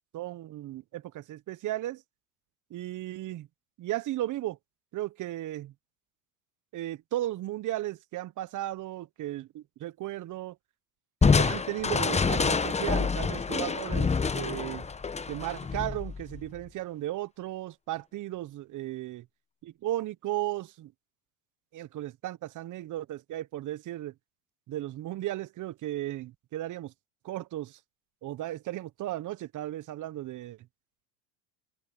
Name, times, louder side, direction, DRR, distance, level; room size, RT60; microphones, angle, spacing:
voice 1, 0.1-2.0 2.7-3.5 3.8-4.6 4.9-5.7 6.7-10.6 11.2-14.9 15.3-19.2 19.6-20.9 21.7-24.1 24.7-26.9 27.2-27.8 28.2-30.7, right 14 dB, 45° right, 1.2 m, -35 dB
Crushing, 11.2-16.6, left 5 dB, 15° left, 1.1 m, -27 dB
hypercardioid pair, 95°, 43 cm